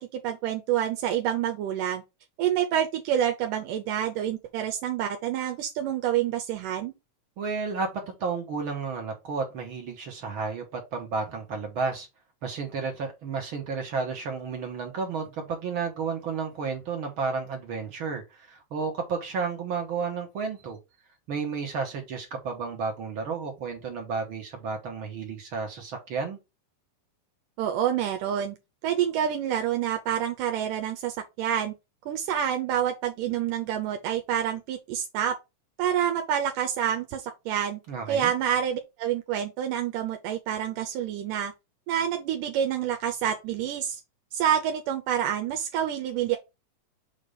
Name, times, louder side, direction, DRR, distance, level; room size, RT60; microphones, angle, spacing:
voice 1, 0.0-2.0 2.4-6.9 27.6-28.6 28.8-31.7 32.1-35.4 35.8-37.8 38.1-41.5 41.9-44.0 44.3-46.4, right 10 dB, 80° right, 2.3 m, -27 dB
voice 2, 7.4-12.1 12.4-20.8 21.3-26.4 37.9-38.3, right 5 dB, 50° right, 1.6 m, -32 dB
6.6 x 2.9 x 5.1 m
omnidirectional pair, 3.9 m